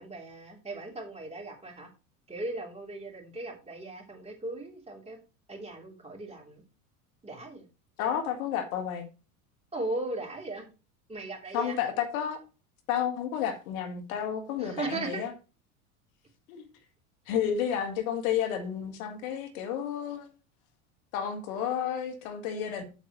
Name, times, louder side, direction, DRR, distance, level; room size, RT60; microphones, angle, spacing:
voice 1, 0.0-1.9 2.3-5.2 5.5-6.6 7.2-7.6 9.7-10.7 11.1-11.9 14.6-15.2, right 2 dB, 15° right, 3.3 m, -37 dB
voice 2, 8.0-9.1 11.5-12.4 12.9-15.3 16.5-16.6 17.3-20.3 21.1-22.8, left 9 dB, 70° left, 1.7 m, -31 dB
8.2 x 8.1 x 3.1 m
hypercardioid pair, 90°, 44 cm